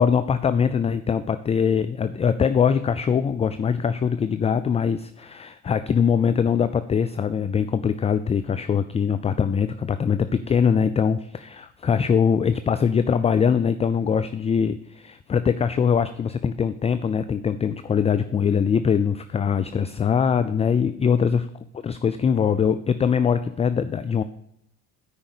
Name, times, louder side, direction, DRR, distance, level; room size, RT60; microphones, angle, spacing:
voice 1, 0.0-21.5 21.7-24.2, left 7 dB, 20° left, 11 dB, 0.4 m, -22 dB
9.0 x 5.2 x 6.7 m, 0.74 s
hypercardioid pair, 65°, 36 cm